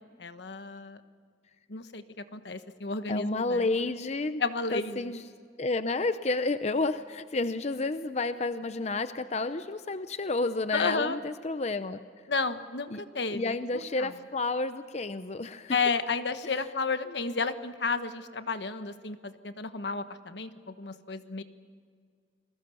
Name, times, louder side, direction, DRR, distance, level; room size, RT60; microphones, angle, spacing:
voice 1, 0.2-1.0 1.7-2.0 2.3-3.9 4.4-5.1 10.7-11.2 12.3-13.6 14.0-14.1 15.7-21.4, left 4 dB, 80° left, 10 dB, 1.3 m, -32 dB
voice 2, 3.1-4.4 4.7-5.2 5.6-12.0 12.9-13.0 13.3-15.8, left 3 dB, 40° left, 11 dB, 0.6 m, -30 dB
30.0 x 21.0 x 7.0 m, 2.1 s
head